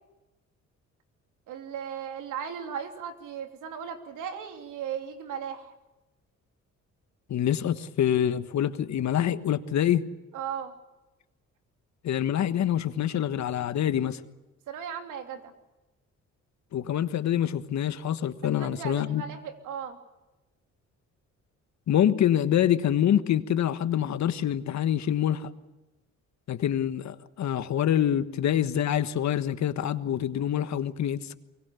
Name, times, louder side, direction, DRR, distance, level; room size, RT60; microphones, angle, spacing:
voice 1, 1.5-5.7 10.3-10.7 14.7-15.5 18.6-20.0, right 8 dB, 85° right, 6 dB, 3.1 m, -36 dB
voice 2, 7.3-10.0 12.0-14.2 16.7-19.2 21.9-25.5 26.5-31.4, left 10 dB, 65° left, 12 dB, 1.4 m, -26 dB
24.0 x 23.5 x 7.0 m, 1.1 s
cardioid pair, 90°, 30 cm